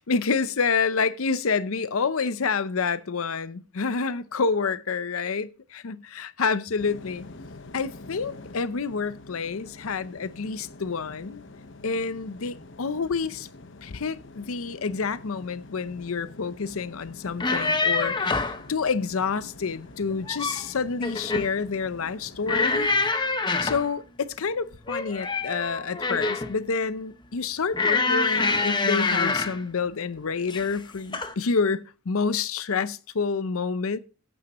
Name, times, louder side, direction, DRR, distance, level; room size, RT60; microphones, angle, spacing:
voice 1, 0.0-7.3 7.7-11.4 11.8-13.5 13.8-22.9 23.6-34.0, left 5 dB, 75° left, 0.6 m, -28 dB
sound 1, 6.8-22.7, left 2 dB, 60° left, 1.1 m, -46 dB
sound 2, 17.3-18.6 20.1-20.7 21.0-21.5 22.5-23.9 24.9-26.5 27.7-29.6 30.5-30.8 31.1-31.3, left 3 dB, 20° left, 0.8 m, -25 dB
13.5 x 9.1 x 3.0 m
head